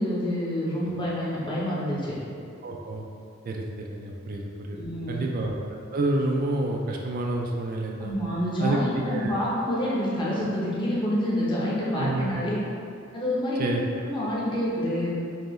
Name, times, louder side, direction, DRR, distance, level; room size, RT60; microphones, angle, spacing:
voice 1, 0.0-2.2 4.7-5.2 8.0-12.6 13.1-15.1, equal, 25° left, -7 dB, 0.9 m, -27 dB
voice 2, 2.6-3.0 3.5-4.8 5.1-8.1 8.6-9.4 11.8-12.4 13.6-13.8, right 2 dB, 45° right, 0 dB, 0.3 m, -29 dB
4.5 x 2.8 x 3.1 m, 2.5 s
head